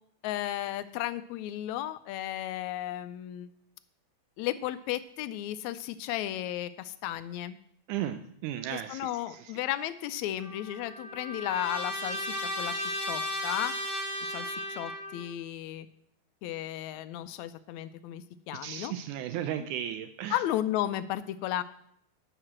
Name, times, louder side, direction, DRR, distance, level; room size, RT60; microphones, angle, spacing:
voice 1, 0.2-3.5 4.4-7.6 8.7-13.7 14.3-15.9 16.4-18.9 20.3-21.6, left 13 dB, 80° left, 13 dB, 1.7 m, -34 dB
voice 2, 7.9-9.5 18.6-20.4, right 11 dB, 80° right, 9 dB, 2.1 m, -35 dB
Trumpet, 10.4-15.3, left 1 dB, 50° right, 4.3 m, -35 dB
11.0 x 5.8 x 7.4 m, 0.69 s
omnidirectional pair, 3.6 m